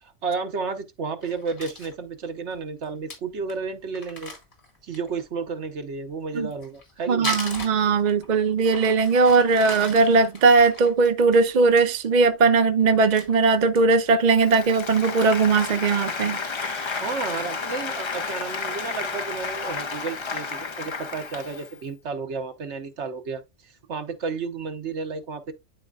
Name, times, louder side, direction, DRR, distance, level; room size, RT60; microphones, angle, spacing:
voice 1, 0.0-4.3 4.8-7.3 17.0-25.5, right 4 dB, 70° right, 1.3 m, -32 dB
Crumpling crinkling, 1.2-1.9 2.5-2.6 2.8-2.9 3.1-3.2 3.5-3.6 3.9-5.2 6.4-8.3 8.6-11.8 12.2-12.5 12.8-14.0 14.4-14.5 14.9-15.4, left 2 dB, 60° left, 2.2 m, -38 dB
voice 2, 7.1-16.9, right 4 dB, 45° right, 0.8 m, -19 dB
Applause, 14.3-21.8, left 4 dB, 35° left, 0.5 m, -32 dB
11.0 x 4.4 x 2.4 m
omnidirectional pair, 1.2 m